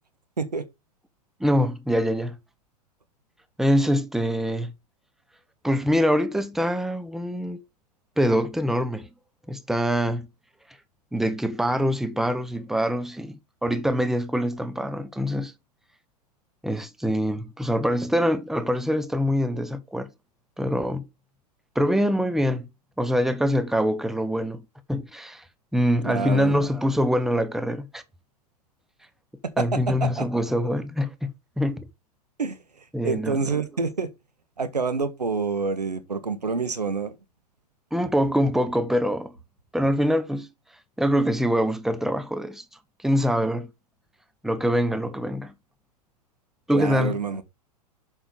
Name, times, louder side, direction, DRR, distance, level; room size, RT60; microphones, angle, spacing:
voice 1, 1.4-2.4 3.6-4.7 5.6-7.6 8.2-9.1 9.5-10.3 11.1-15.5 16.6-20.1 20.6-21.1 21.7-22.7 23.0-24.6 24.9-25.4 25.7-28.0 29.6-31.9 32.9-33.6 37.9-39.3 39.7-40.5 41.0-42.6 43.0-43.7 44.4-45.5 46.7-47.3, equal, ahead, 1.1 m, -24 dB
voice 2, 26.0-26.5 29.6-30.3 32.4-32.6 33.0-34.1 34.6-37.2 46.7-47.4, right 4 dB, 85° right, 1.5 m, -27 dB
7.6 x 6.4 x 3.9 m
figure-of-eight pair, 100°, 20 cm